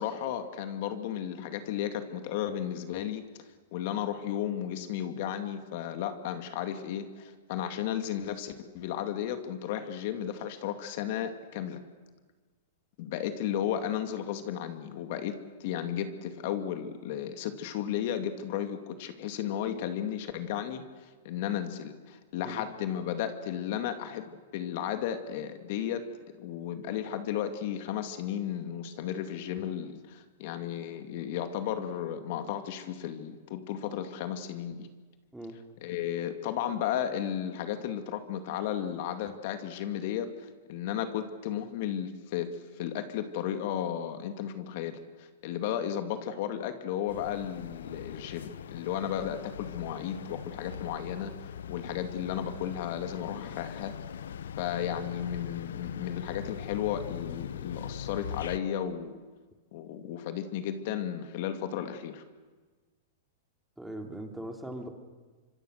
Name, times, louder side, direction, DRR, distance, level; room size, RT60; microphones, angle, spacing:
voice 1, 0.0-3.2 3.7-11.8 13.0-15.3 15.6-26.0 26.4-34.9 35.8-53.9 54.6-59.2 59.7-62.2, left 10 dB, 55° left, 8 dB, 2.3 m, -34 dB
sound 1, 47.1-58.6, left 8 dB, 85° left, 0.9 m, -41 dB
voice 2, 63.8-64.9, right 1 dB, 5° right, 4 dB, 3.0 m, -40 dB
25.5 x 24.0 x 6.6 m, 1.4 s
hypercardioid pair, 130°, 0 cm